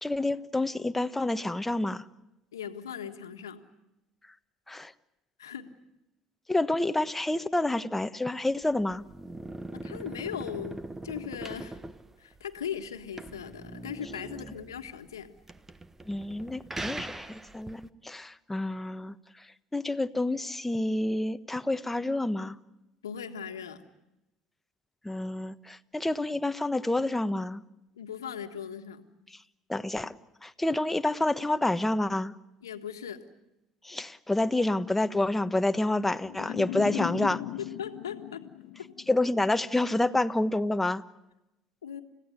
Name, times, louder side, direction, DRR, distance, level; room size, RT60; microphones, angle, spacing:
voice 1, 0.0-2.0 4.7-4.9 6.5-9.0 16.1-19.1 19.7-22.6 25.0-27.6 29.7-30.1 30.4-32.3 33.8-37.4 39.1-41.0, left 2 dB, 10° left, 11 dB, 1.3 m, -28 dB
voice 2, 2.5-3.6 5.4-5.7 9.7-10.8 11.0-11.8 12.2-15.3 23.0-23.8 28.0-29.1 32.6-33.2 37.6-38.4 41.8-42.0, left 8 dB, 90° left, 7 dB, 1.6 m, -38 dB
sound 1, 8.6-17.9, right 2 dB, 15° right, 1.4 m, -42 dB
sound 2, 36.2-39.4, left 16 dB, 70° left, 0.8 m, -37 dB
30.0 x 16.5 x 9.7 m, 0.95 s
hypercardioid pair, 65°, 2 cm